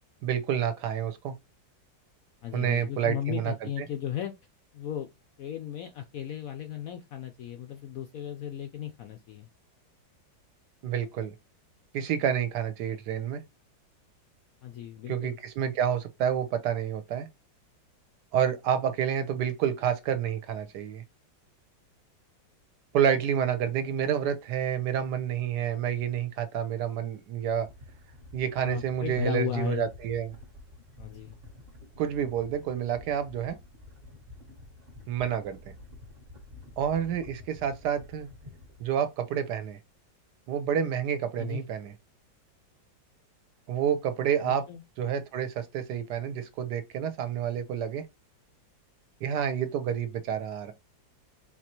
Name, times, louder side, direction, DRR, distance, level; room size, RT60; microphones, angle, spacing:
voice 1, 0.2-1.3 2.5-3.5 10.8-11.3 11.9-13.4 15.1-17.3 18.3-21.0 22.9-27.7 28.3-30.3 32.0-33.6 35.1-35.6 36.8-38.3 38.8-39.8 40.5-41.9 43.7-44.6 45.0-48.1 49.2-50.7, right 9 dB, 70° right, 1.1 m, -29 dB
voice 2, 2.4-4.3 4.7-5.1 5.4-9.5 14.6-15.4 28.6-29.9 31.0-31.4 41.4-41.6 44.4-44.8, left 11 dB, 85° left, 0.7 m, -35 dB
sound 1, 27.5-39.0, left 2 dB, 40° right, 0.9 m, -50 dB
4.5 x 3.0 x 2.9 m
omnidirectional pair, 2.1 m